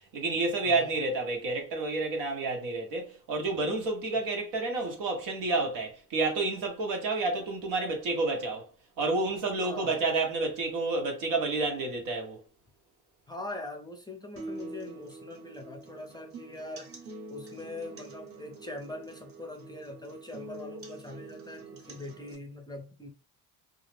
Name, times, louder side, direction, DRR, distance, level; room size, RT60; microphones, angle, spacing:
voice 1, 0.1-8.7 9.0-12.4, right 3 dB, 90° right, 0.9 m, -30 dB
voice 2, 9.6-10.0 13.3-16.9 17.3-23.1, left 2 dB, 10° left, 0.4 m, -42 dB
sound 1, 14.4-22.3, right 2 dB, 35° right, 0.6 m, -45 dB
2.3 x 2.0 x 3.1 m
cardioid pair, 100°, 43 cm